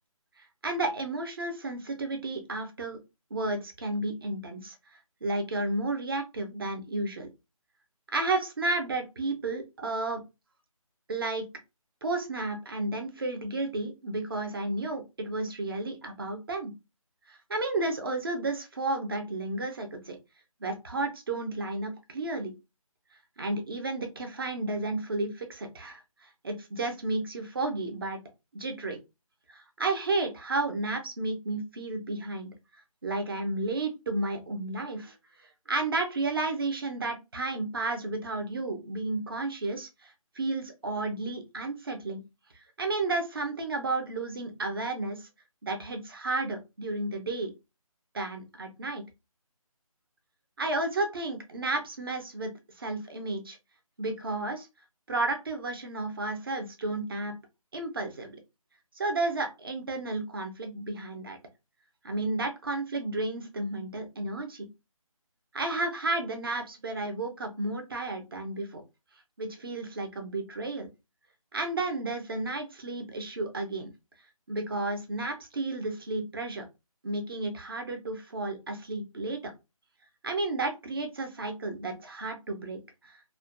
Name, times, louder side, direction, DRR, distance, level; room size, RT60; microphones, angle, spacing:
voice 1, 0.6-3.0 3.3-4.7 5.2-7.3 8.1-10.2 11.1-11.5 12.0-16.7 17.3-20.2 20.6-22.5 23.4-26.0 26.4-28.2 28.5-29.0 29.5-32.5 33.0-35.1 35.7-42.2 42.8-45.3 45.6-47.5 48.1-49.0 50.6-52.5 52.8-53.6 54.0-54.7 55.1-57.3 57.7-58.4 59.0-61.4 62.0-64.7 65.5-68.8 69.4-70.9 71.5-73.9 74.5-76.6 77.0-79.5 80.2-82.8 83.1-83.2, right 2 dB, 40° right, 5 dB, 0.5 m, -32 dB
2.4 x 2.2 x 2.4 m, 0.25 s
figure-of-eight pair, 155°, 19 cm